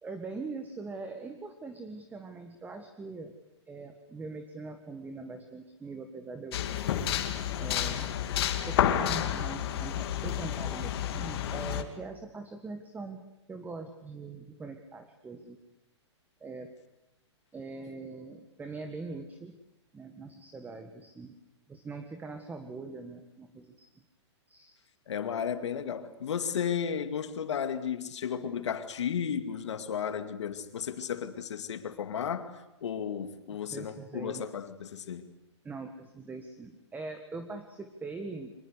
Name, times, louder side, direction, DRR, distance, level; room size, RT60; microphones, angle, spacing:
voice 1, 0.0-3.3 3.7-6.6 7.6-8.1 8.4-13.2 13.5-15.6 16.4-16.7 17.5-19.5 19.9-21.3 21.7-23.9 24.5-24.8 33.7-34.5 35.6-38.5, right 3 dB, 10° right, 1.7 m, -42 dB
sound 1, 6.5-11.8, left 10 dB, 55° left, 2.4 m, -30 dB
voice 2, 25.1-35.3, left 8 dB, 75° left, 2.3 m, -34 dB
24.5 x 21.0 x 8.3 m
hypercardioid pair, 130°, 15 cm